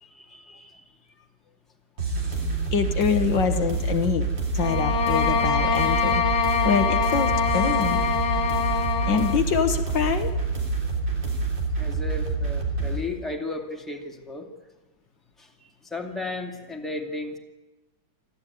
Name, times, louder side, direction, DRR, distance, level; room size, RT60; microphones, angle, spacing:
voice 1, 0.0-0.8 11.8-14.5 15.4-17.4, left 2 dB, ahead, 2 dB, 2.2 m, -35 dB
sound 1, 2.0-13.0, right 3 dB, 65° right, 4.2 m, -27 dB
voice 2, 2.7-4.3 4.5-8.0 9.1-10.3, left 7 dB, 65° left, 7 dB, 1.8 m, -25 dB
sound 2, 4.6-9.4, left 7 dB, 40° left, 1.6 m, -24 dB
24.0 x 14.5 x 9.4 m, 1.1 s
omnidirectional pair, 2.1 m